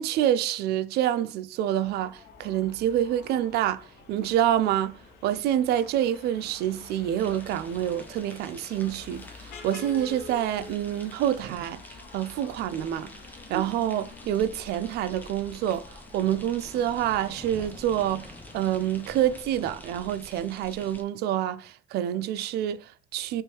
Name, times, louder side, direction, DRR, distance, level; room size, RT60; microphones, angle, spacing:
voice 1, 0.0-11.8 12.1-13.1 13.5-23.4, right 11 dB, 75° right, 0.4 m, -27 dB
sound 1, 1.8-19.4, left 4 dB, 75° left, 0.8 m, -48 dB
sound 2, 7.2-21.0, left 1 dB, 10° left, 0.7 m, -48 dB
3.1 x 3.0 x 3.5 m
cardioid pair, 110°, 17 cm